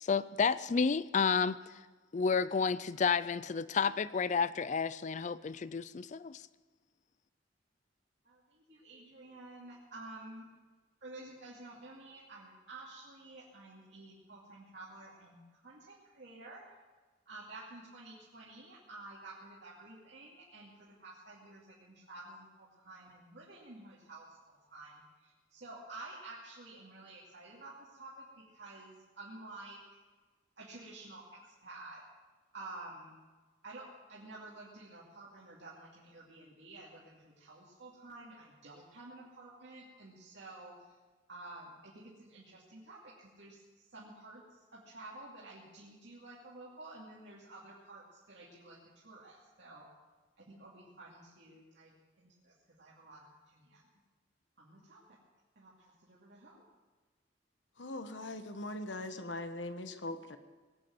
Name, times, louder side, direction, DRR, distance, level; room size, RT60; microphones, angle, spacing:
voice 1, 0.0-1.8 2.1-6.4, left 5 dB, 40° left, 17 dB, 0.4 m, -31 dB
voice 2, 8.2-10.5 11.0-16.7 17.3-30.0 30.6-32.0 32.5-33.2 33.6-41.0 41.3-48.8 49.0-49.9 50.4-53.9 54.6-55.2 55.6-56.6, right 2 dB, 65° right, -6 dB, 2.6 m, -51 dB
voice 3, 57.8-60.4, left 2 dB, 75° left, 9 dB, 1.2 m, -41 dB
20.0 x 8.8 x 7.6 m, 1.3 s
head